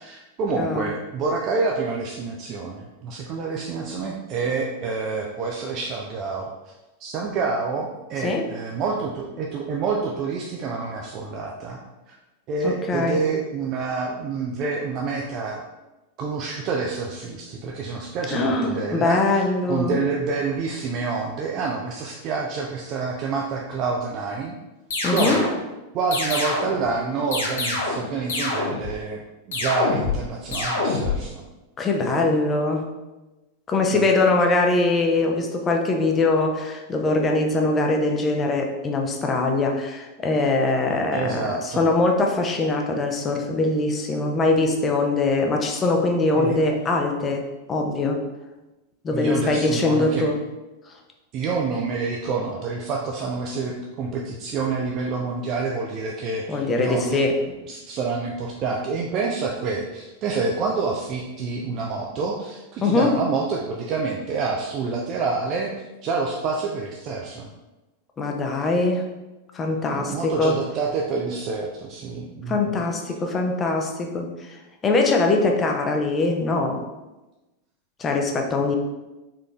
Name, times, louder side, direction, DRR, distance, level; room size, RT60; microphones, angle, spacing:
voice 1, 0.0-6.5 7.0-11.8 12.1-12.2 12.5-15.6 16.2-19.2 19.7-24.5 25.1-25.5 25.9-31.5 32.1-32.3 33.9-34.1 41.1-41.8 46.3-46.6 49.1-50.3 51.3-57.2 57.7-65.7 66.0-67.5 69.9-72.6, right 4 dB, 35° right, -1 dB, 0.4 m, -27 dB
voice 2, 0.6-0.9 8.2-8.4 12.6-13.2 18.3-20.0 25.0-25.4 31.8-32.9 33.7-47.4 47.7-48.2 49.0-50.4 56.5-57.4 62.8-63.1 68.2-69.0 69.5-70.6 72.5-76.8 78.0-78.8, left 3 dB, 20° left, 3 dB, 0.5 m, -22 dB
sound 1, 24.9-25.6 26.1-26.8 27.3-28.0 28.3-28.9 29.5-30.2 30.5-31.2, left 3 dB, 60° left, 0.9 m, -25 dB
3.7 x 3.7 x 2.3 m, 1.1 s
figure-of-eight pair, 90°, 0 cm